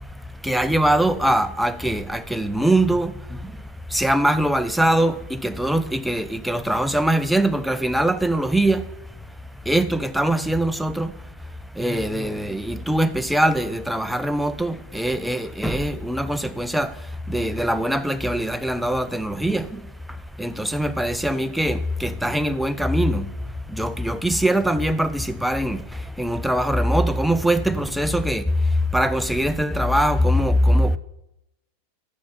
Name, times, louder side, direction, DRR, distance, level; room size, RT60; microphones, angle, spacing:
voice 1, 0.4-3.5 3.9-8.9 9.7-11.2 11.7-19.9 20.4-23.3 23.7-31.0, right 1 dB, ahead, 0.5 m, -22 dB
7.0 x 6.4 x 7.5 m
figure-of-eight pair, 90°, 0 cm